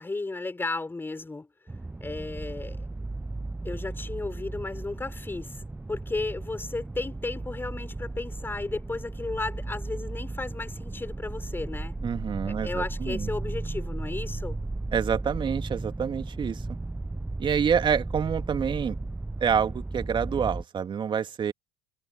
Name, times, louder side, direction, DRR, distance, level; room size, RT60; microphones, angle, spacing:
voice 1, 0.0-1.5 2.0-2.9 3.6-11.9 12.4-14.6, left 3 dB, 15° left, 6.0 m, -34 dB
sound 1, 1.7-20.6, right 2 dB, 10° right, 1.1 m, -35 dB
voice 2, 12.0-13.3 14.9-16.6 17.4-19.0 19.4-21.5, right 7 dB, 35° right, 2.3 m, -27 dB
figure-of-eight pair, 65°, 14 cm